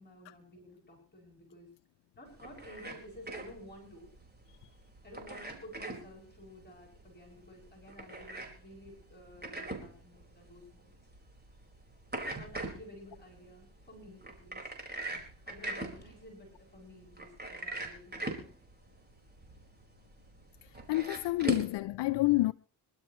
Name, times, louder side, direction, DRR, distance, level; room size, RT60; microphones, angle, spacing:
voice 1, 0.0-1.7 2.2-4.1 5.0-10.9 12.3-14.7 15.5-18.5, left 1 dB, 25° left, 7.5 m, -52 dB
sound 1, 2.3-21.8, right 2 dB, 25° right, 4.8 m, -42 dB
voice 2, 20.6-22.5, left 19 dB, 80° left, 0.6 m, -29 dB
26.5 x 12.0 x 3.1 m
cardioid pair, 85°, 42 cm